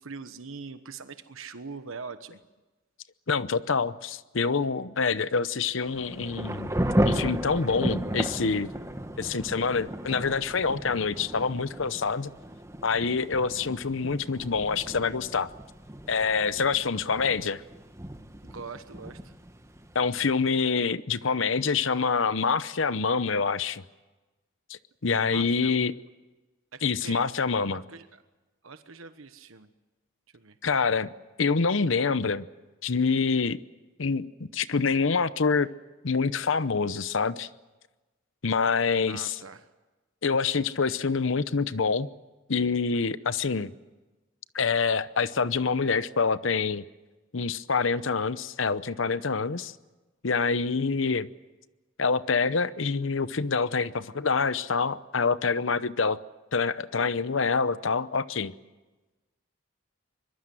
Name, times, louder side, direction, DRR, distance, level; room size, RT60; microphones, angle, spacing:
voice 1, 0.0-2.4 18.4-19.3 25.3-25.8 26.7-27.2 27.7-28.2 28.6-29.7 30.3-30.6 39.1-39.7, right 4 dB, 85° right, 1.2 m, -42 dB
voice 2, 3.3-6.8 7.0-8.7 9.2-12.3 12.8-15.5 16.1-17.6 19.9-23.8 24.7-25.9 26.8-27.8 30.6-31.1 31.4-32.5 32.8-33.6 34.0-35.7 36.0-37.5 38.4-39.4 40.2-42.1 42.5-43.7 44.5-46.8 47.3-49.7 50.2-51.3 52.0-56.2 56.5-58.5, left 5 dB, 75° left, 0.8 m, -26 dB
Thunder / Rain, 5.8-20.3, right 1 dB, 15° right, 1.1 m, -34 dB
24.5 x 22.5 x 7.7 m
head